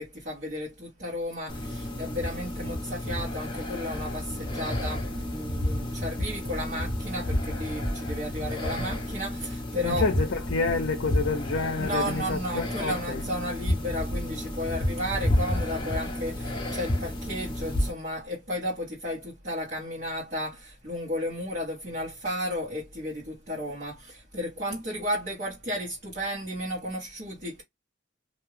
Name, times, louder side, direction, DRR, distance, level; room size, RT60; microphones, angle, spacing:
voice 1, 0.0-10.1 11.8-27.6, equal, 45° right, 1.3 m, -33 dB
sound 1, 1.5-17.9, left 1 dB, 25° left, 0.8 m, -31 dB
voice 2, 9.8-13.2 15.5-15.6, left 4 dB, 60° left, 0.6 m, -29 dB
2.7 x 2.3 x 3.1 m
head